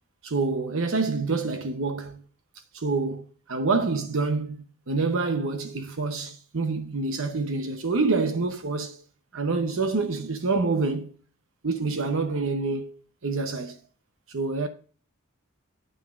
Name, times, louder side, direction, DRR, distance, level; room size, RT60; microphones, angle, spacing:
voice 1, 0.2-2.2 2.7-9.0 9.3-11.1 11.6-13.8 14.3-14.7, right 3 dB, 65° right, 0.9 m, -27 dB
9.5 x 8.9 x 2.5 m
head